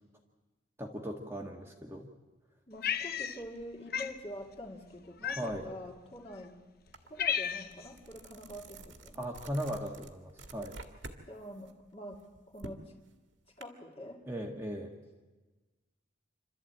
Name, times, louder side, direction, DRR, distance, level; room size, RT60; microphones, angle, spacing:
voice 1, 0.8-2.1 5.3-5.7 9.1-10.8 14.3-14.9, equal, 10° right, 1 dB, 1.5 m, -38 dB
voice 2, 2.7-6.5 7.1-9.3 11.3-12.9 13.6-14.2, left 1 dB, 30° left, 1 dB, 2.5 m, -46 dB
Cat, 2.8-3.6 3.9-4.2 5.2-5.7 6.4-6.5 6.9-7.9, left 8 dB, 45° left, 0.8 m, -34 dB
sound 1, 6.9-7.1 7.5-11.2 11.6-13.6, right 2 dB, 60° right, 1.9 m, -49 dB
27.0 x 13.0 x 9.0 m, 1.2 s
head